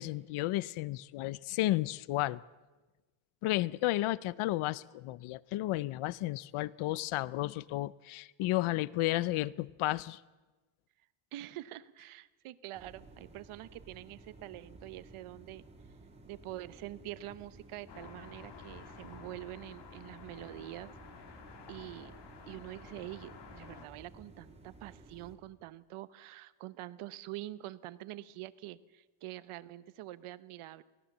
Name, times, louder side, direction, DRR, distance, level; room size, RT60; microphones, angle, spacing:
voice 1, 0.0-2.4 3.4-10.2, left 16 dB, 80° left, 21 dB, 0.7 m, -32 dB
voice 2, 11.3-15.6 16.3-21.0 21.7-22.1 22.5-30.8, right 15 dB, 85° right, 16 dB, 1.0 m, -45 dB
sound 1, 12.7-25.4, right 3 dB, 10° right, 2.5 m, -55 dB
sound 2, 17.9-23.9, left 6 dB, 55° left, 2.5 m, -52 dB
23.5 x 17.5 x 7.2 m, 1.2 s
cardioid pair, 165°, 49 cm